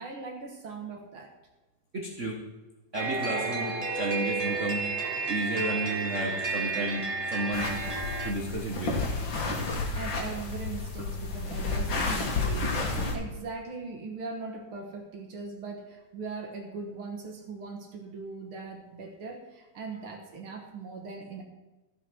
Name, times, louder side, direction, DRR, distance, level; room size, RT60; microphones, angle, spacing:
voice 1, 0.0-1.3 9.7-21.4, right 4 dB, 55° right, 2 dB, 1.9 m, -40 dB
voice 2, 1.9-2.4 2.9-4.9 5.3-7.7 8.2-9.0, right 1 dB, 85° right, 0 dB, 0.6 m, -32 dB
sound 1, 2.9-8.3, right 4 dB, 15° right, 1.5 m, -31 dB
sound 2, 7.5-13.1, left 3 dB, 45° left, 2.1 m, -31 dB
14.0 x 5.9 x 6.1 m, 1.1 s
omnidirectional pair, 3.3 m